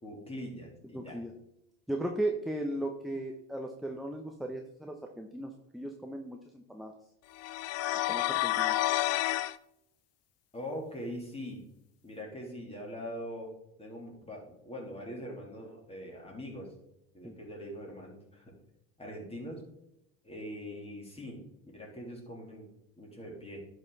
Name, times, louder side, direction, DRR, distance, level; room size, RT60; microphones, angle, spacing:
voice 1, 0.0-1.2 10.5-11.7 12.0-13.5 13.8-16.7 17.1-18.5 19.0-19.6 20.2-21.4 21.7-22.7 23.0-23.6, equal, 15° left, -1 dB, 3.2 m, -42 dB
voice 2, 0.9-1.3 1.9-6.9 8.1-8.8 17.2-17.4, right 1 dB, ahead, 3 dB, 0.8 m, -36 dB
sound 1, 7.4-9.5, left 15 dB, 45° left, 0.5 m, -29 dB
10.5 x 5.6 x 4.0 m, 0.81 s
supercardioid pair, 105°, 36 cm